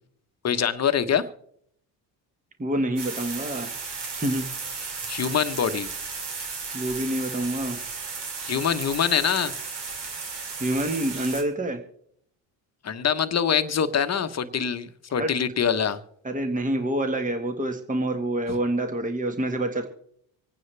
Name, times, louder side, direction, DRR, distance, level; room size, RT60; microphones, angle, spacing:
voice 1, 0.4-1.3 5.1-5.9 8.4-9.5 12.8-16.0, left 7 dB, 35° left, 10 dB, 1.1 m, -24 dB
voice 2, 2.6-3.7 4.1-4.5 6.7-7.8 10.6-11.8 15.2-15.3 16.2-19.9, right 1 dB, 15° right, 6 dB, 1.6 m, -27 dB
sound 1, 3.0-11.4, right 4 dB, 60° right, 3.0 m, -34 dB
26.0 x 9.3 x 3.4 m, 0.69 s
supercardioid pair, 80°, 46 cm